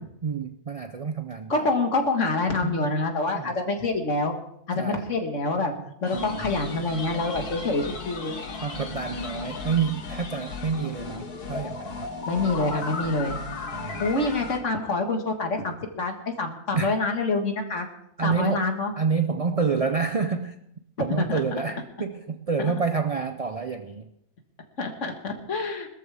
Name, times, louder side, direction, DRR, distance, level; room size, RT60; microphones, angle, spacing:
voice 1, 0.2-1.7 2.6-2.9 3.3-3.5 4.8-5.1 6.1-6.5 8.6-12.1 13.7-14.1 16.7-16.9 18.2-18.7 19.0-20.6 21.0-24.1, right 5 dB, 70° right, 8 dB, 0.3 m, -28 dB
voice 2, 1.5-4.3 4.7-5.7 6.0-8.4 12.3-13.4 14.0-17.9 18.2-18.9 21.2-21.4 22.6-22.7 24.8-25.9, left 3 dB, 50° left, 4 dB, 1.9 m, -26 dB
sound 1, 6.0-14.6, left 4 dB, 80° left, 2.1 m, -35 dB
21.0 x 13.5 x 3.5 m, 0.76 s
omnidirectional pair, 1.6 m